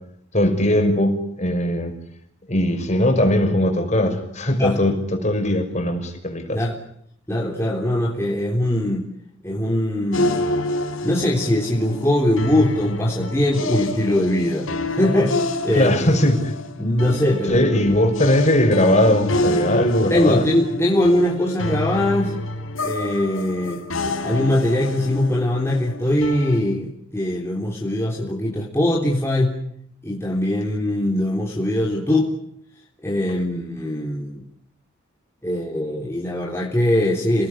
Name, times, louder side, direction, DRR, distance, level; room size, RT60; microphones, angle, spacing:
voice 1, 0.3-1.9 2.5-6.6 15.7-16.5 17.5-20.4, left 1 dB, 35° left, 5 dB, 5.7 m, -19 dB
voice 2, 7.3-9.0 9.4-10.5 11.0-16.1 16.8-17.8 20.1-22.4 22.8-23.8 24.2-29.6 30.0-32.3 33.0-34.4 35.4-37.5, left 1 dB, 15° left, -2 dB, 3.5 m, -21 dB
sound 1, 10.1-26.6, left 1 dB, 85° left, 4.0 m, -28 dB
30.0 x 19.0 x 9.9 m, 0.70 s
head